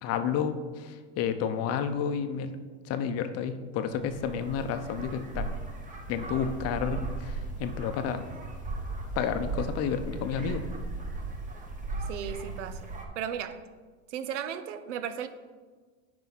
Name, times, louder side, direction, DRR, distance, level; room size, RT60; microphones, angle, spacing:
voice 1, 0.0-2.5 2.9-5.5 6.1-8.3 9.2-10.6, left 7 dB, 40° left, 9 dB, 0.7 m, -31 dB
sound 1, 3.9-13.1, right 3 dB, 20° right, 1.1 m, -37 dB
voice 2, 12.1-13.6 14.1-15.3, right 8 dB, 80° right, 12 dB, 0.7 m, -35 dB
9.4 x 4.8 x 4.1 m, 1.5 s
hypercardioid pair, 110°, 36 cm